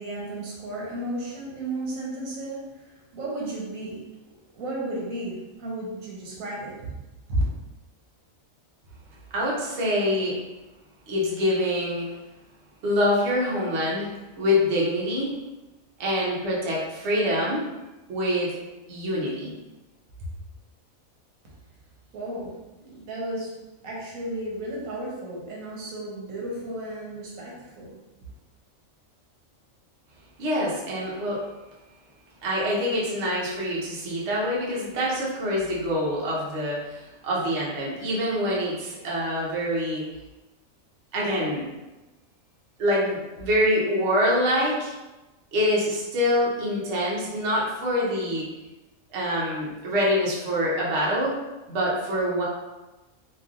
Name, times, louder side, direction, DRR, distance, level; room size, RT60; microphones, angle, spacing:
voice 1, 0.0-4.0 4.5-7.0 7.3-7.4 22.1-22.5 22.8-23.5 23.8-28.0, right 1 dB, 80° right, -4 dB, 1.2 m, -33 dB
voice 2, 9.3-10.4 11.1-12.1 12.8-15.3 16.0-17.7 18.1-18.5 18.9-19.5 30.4-31.4 32.4-40.1 41.1-41.7 42.8-44.9 45.5-48.5 49.1-51.4 51.7-52.4, equal, 60° right, -5 dB, 1.0 m, -25 dB
3.1 x 2.5 x 2.4 m, 1.1 s
omnidirectional pair, 1.4 m